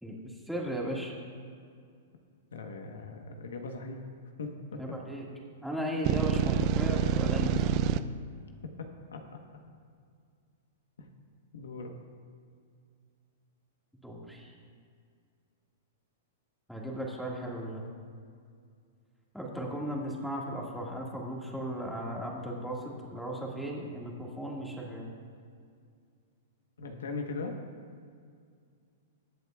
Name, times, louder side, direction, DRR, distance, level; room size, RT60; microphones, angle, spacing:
voice 1, 0.0-1.1 4.8-5.2 5.6-7.8 14.0-14.5 16.7-17.8 19.3-25.1, equal, ahead, -3 dB, 1.8 m, -36 dB
voice 2, 2.5-4.0 4.4-5.0 8.8-9.2 11.0-11.1 11.5-11.9 26.8-27.6, left 3 dB, 90° left, 4 dB, 1.1 m, -39 dB
sound 1, 6.1-8.0, right 10 dB, 40° right, 0.4 m, -27 dB
21.0 x 8.0 x 2.4 m, 2.2 s
hypercardioid pair, 135°, 0 cm